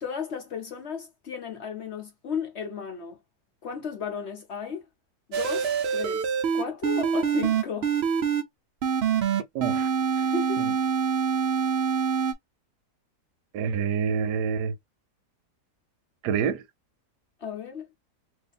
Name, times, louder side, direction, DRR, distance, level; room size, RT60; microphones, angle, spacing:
voice 1, 0.0-3.2 3.6-4.8 5.3-7.9 10.2-10.7 17.4-17.9, left 6 dB, 55° left, 0.8 m, -34 dB
sound 1, 5.3-8.4 8.8-12.3, right 6 dB, 60° right, 0.6 m, -25 dB
voice 2, 9.5-9.9 10.6-10.7 13.5-14.7 16.2-16.6, right 7 dB, 85° right, 1.2 m, -27 dB
2.7 x 2.4 x 3.9 m
omnidirectional pair, 1.7 m